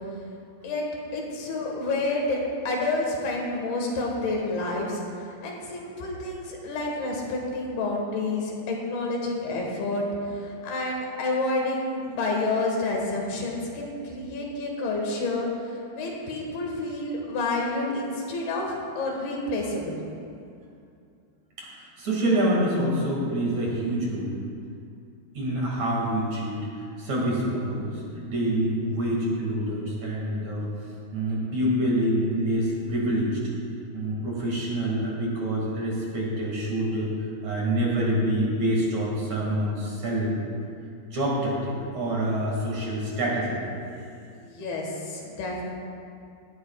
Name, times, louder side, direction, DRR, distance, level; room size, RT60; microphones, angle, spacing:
voice 1, 1.1-5.0 5.4-10.1 10.4-15.5 15.9-20.0 44.3-45.6, left 2 dB, 75° left, -1 dB, 3.5 m, -29 dB
voice 2, 21.6-24.4 25.3-30.7 31.1-33.4 33.9-37.1 37.4-40.4 41.1-43.6, right 1 dB, 50° right, -4 dB, 3.1 m, -26 dB
17.5 x 13.0 x 2.4 m, 2.4 s
omnidirectional pair, 4.7 m